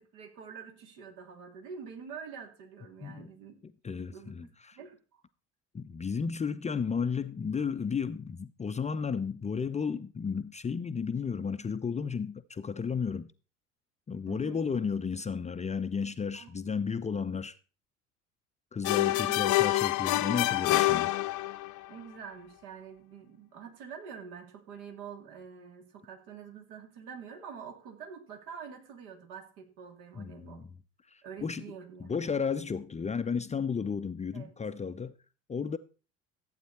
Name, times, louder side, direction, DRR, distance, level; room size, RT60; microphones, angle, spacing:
voice 1, 0.0-3.6 3.9-5.2 14.3-14.6 16.3-16.5 18.9-19.4 21.9-30.6 31.2-32.1 34.3-34.5, right 6 dB, 60° right, 3.1 m, -46 dB
voice 2, 3.0-3.3 3.6-4.8 5.7-13.3 14.1-17.5 18.7-21.1 30.2-30.7 31.1-31.7 32.0-35.2 35.5-35.8, left 6 dB, 20° left, 0.7 m, -33 dB
sound 1, 18.8-21.8, left 17 dB, 50° left, 0.8 m, -26 dB
14.5 x 8.8 x 4.2 m
figure-of-eight pair, 60°, 37 cm